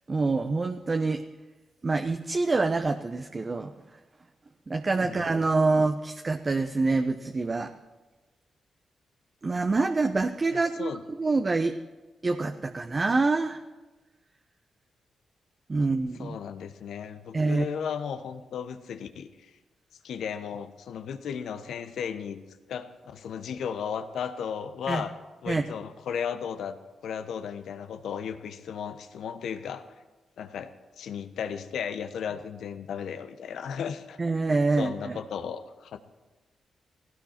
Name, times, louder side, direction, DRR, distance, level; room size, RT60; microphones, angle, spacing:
voice 1, 0.1-1.2 1.8-3.7 4.7-7.7 9.4-11.7 12.2-13.6 15.7-16.4 17.3-17.7 24.9-25.0 25.5-25.6 34.2-35.2, right 3 dB, 40° right, 6 dB, 1.0 m, -26 dB
voice 2, 10.5-11.0 16.2-19.5 20.0-22.4 22.7-25.1 25.4-26.8 27.0-29.8 30.4-34.2 34.8-36.0, left 7 dB, 75° left, 10 dB, 1.0 m, -35 dB
17.5 x 16.5 x 4.5 m, 1.2 s
supercardioid pair, 40°, 0 cm